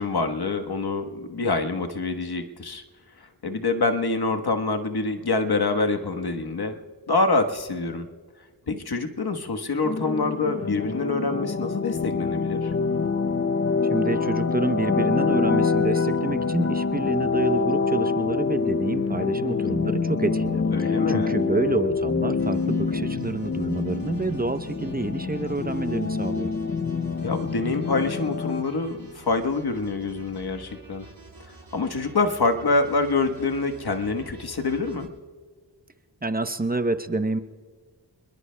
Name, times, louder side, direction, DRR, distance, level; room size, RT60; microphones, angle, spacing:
voice 1, 0.0-2.8 3.2-6.8 7.1-8.1 8.7-12.7 20.7-21.3 27.2-31.0 31.7-35.1, left 3 dB, 60° left, 5 dB, 1.3 m, -26 dB
sound 1, 9.8-28.6, left 4 dB, 35° left, 0.6 m, -26 dB
voice 2, 13.9-26.5 36.2-37.4, right 2 dB, 20° right, 10 dB, 0.8 m, -28 dB
sound 2, 22.4-35.0, right 2 dB, 55° right, 6.2 m, -48 dB
28.0 x 21.5 x 2.2 m, 1.5 s
cardioid pair, 40°, 42 cm